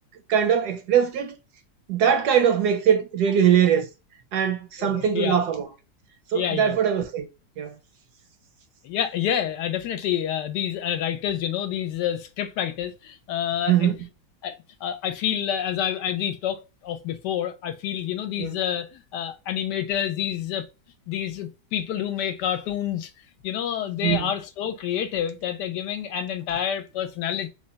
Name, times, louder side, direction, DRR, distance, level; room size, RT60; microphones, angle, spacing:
voice 1, 0.3-1.4 1.9-3.9 4.3-5.7 6.3-7.3 7.6-7.7 13.7-14.0 18.4-18.6 24.0-24.3, right 8 dB, 75° right, 1.0 m, -21 dB
voice 2, 4.8-5.4 6.3-6.8 8.8-13.9 14.4-20.7 21.1-23.1 23.4-27.5, left 10 dB, 75° left, 1.1 m, -28 dB
3.4 x 2.2 x 3.8 m
omnidirectional pair, 2.0 m